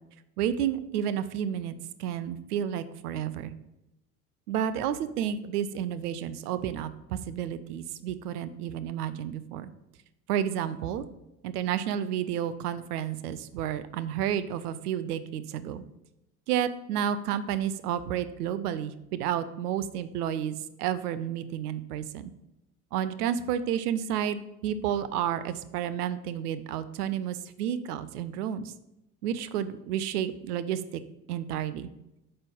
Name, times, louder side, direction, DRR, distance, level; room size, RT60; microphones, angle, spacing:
voice 1, 0.4-3.5 4.5-9.7 10.3-11.1 11.4-15.8 16.5-22.3 22.9-28.7 29.2-30.8 31.3-31.9, right 9 dB, 80° right, 13 dB, 0.6 m, -31 dB
8.0 x 3.3 x 5.3 m, 0.89 s
hypercardioid pair, 70°, 45 cm